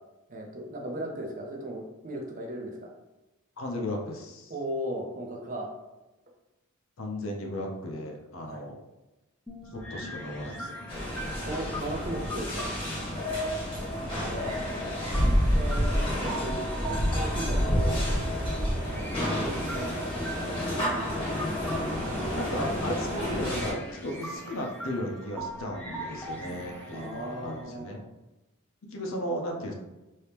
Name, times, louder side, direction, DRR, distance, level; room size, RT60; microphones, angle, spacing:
voice 1, 0.3-2.9 4.5-5.7 8.4-8.7 11.5-12.7 14.1-14.6 15.5-18.0 18.7-19.1 19.4-19.9 20.3-21.3 26.9-28.0, right 1 dB, 40° right, 1 dB, 0.6 m, -37 dB
voice 2, 3.6-4.5 7.0-8.8 9.7-10.9 13.4-13.5 22.3-28.0 28.9-29.7, left 1 dB, 65° left, 1 dB, 0.6 m, -35 dB
sound 1, 9.5-27.6, right 1 dB, 10° left, 0.6 m, -42 dB
sound 2, 10.9-23.7, equal, 25° left, 1.3 m, -29 dB
2.9 x 2.7 x 3.4 m, 1.1 s
head